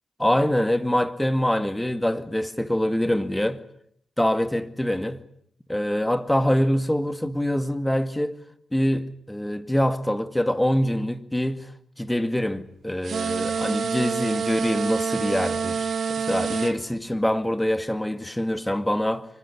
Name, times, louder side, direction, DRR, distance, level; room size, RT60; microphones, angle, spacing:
voice 1, 0.2-3.6 4.2-5.2 5.7-8.4 8.7-11.7 12.0-15.9 16.3-19.3, left 1 dB, 10° left, 2.1 m, -24 dB
sound 1, 13.0-16.7, right 6 dB, 65° right, 2.0 m, -27 dB
25.0 x 19.0 x 9.9 m
cardioid pair, 55°, 0 cm